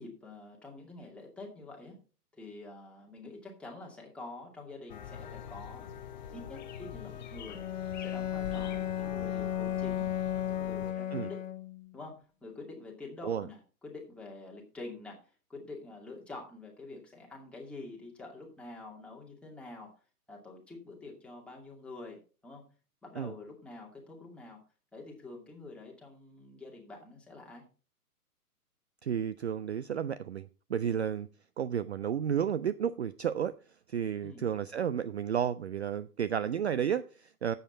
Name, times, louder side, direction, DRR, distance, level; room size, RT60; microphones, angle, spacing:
voice 1, 0.0-2.0 2.3-5.9 6.3-7.6 8.0-10.1 10.3-11.4 11.9-19.9 20.3-22.6 23.0-24.6 24.9-27.6 34.2-34.4, left 3 dB, ahead, -2 dB, 2.4 m, -47 dB
sound 1, 4.9-10.9, left 8 dB, 30° left, 0.9 m, -44 dB
Bowed string instrument, 7.5-11.9, left 11 dB, 55° left, 1.0 m, -34 dB
voice 2, 29.0-31.3 31.6-33.5 33.9-37.5, right 8 dB, 45° right, 14 dB, 0.5 m, -32 dB
11.5 x 8.0 x 4.2 m, 0.36 s
figure-of-eight pair, 125°, 46 cm